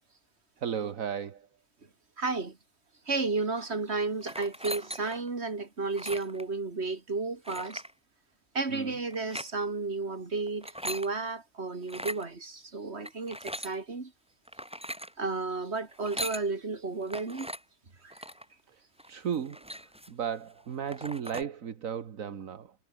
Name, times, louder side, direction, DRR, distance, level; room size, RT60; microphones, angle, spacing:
voice 1, 0.6-1.5 8.7-8.9 18.7-18.8 19.1-22.7, right 8 dB, 70° right, 1.7 m, -35 dB
voice 2, 2.2-2.6 3.1-7.8 8.5-14.1 15.2-17.5 18.0-18.1, right 3 dB, 50° right, 3.1 m, -32 dB
sound 1, 4.2-5.3 5.9-6.4 7.5-7.9 9.1-9.5 10.5-11.1 11.8-12.2 13.0-13.8 14.5-15.1 15.9-16.5 17.1-17.6 18.1-18.5 19.0-19.1 19.3-20.2 20.6-20.7 20.9-21.4, equal, 5° right, 4.9 m, -39 dB
omnidirectional pair, 1.5 m